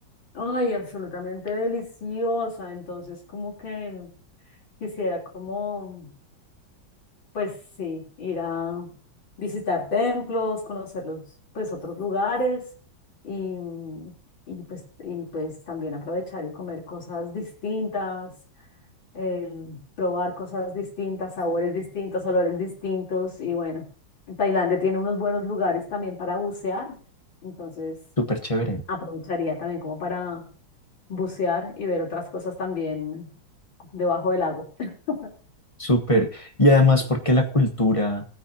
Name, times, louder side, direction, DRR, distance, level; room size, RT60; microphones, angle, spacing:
voice 1, 0.3-4.1 4.8-6.1 7.3-8.9 9.4-11.2 11.5-12.6 13.2-14.1 14.5-18.3 19.1-23.8 24.3-27.0 27.4-27.9 28.9-30.5 31.1-33.3 33.9-35.3, left 3 dB, 65° left, -2 dB, 4.6 m, -29 dB
voice 2, 28.2-28.8 35.8-38.3, left 2 dB, 20° left, 5 dB, 1.2 m, -20 dB
20.5 x 9.3 x 2.9 m, 0.40 s
omnidirectional pair, 2.2 m